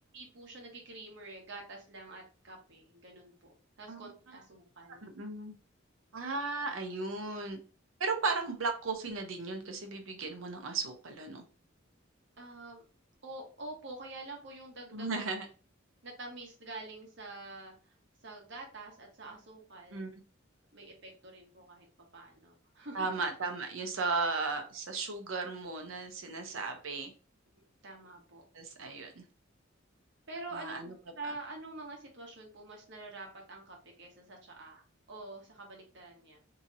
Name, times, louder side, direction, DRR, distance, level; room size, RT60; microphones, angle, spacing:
voice 1, 0.1-5.0 12.4-12.8 13.2-15.1 16.0-17.9 18.2-20.1 20.7-21.9 22.1-23.1 26.5-26.6 27.8-28.4 30.3-36.4, right 2 dB, 60° right, 0 dB, 1.0 m, -47 dB
voice 2, 5.0-5.5 6.1-7.6 8.0-11.4 14.9-15.5 19.9-20.1 22.9-27.1 28.5-29.2 30.5-30.9, right 3 dB, 80° right, 5 dB, 0.7 m, -35 dB
2.9 x 2.7 x 2.5 m, 0.36 s
head